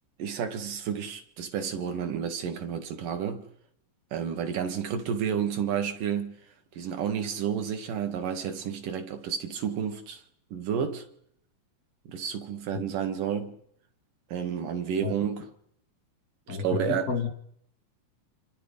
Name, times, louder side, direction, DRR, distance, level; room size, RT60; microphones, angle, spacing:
voice 1, 0.2-3.5 4.1-6.4 6.8-10.2 10.5-11.1 12.1-13.6 14.3-15.5 16.5-17.1, right 8 dB, 65° right, 3.4 m, -31 dB
voice 2, 16.5-17.3, left 6 dB, 45° left, 1.2 m, -31 dB
29.0 x 25.5 x 5.3 m
omnidirectional pair, 4.1 m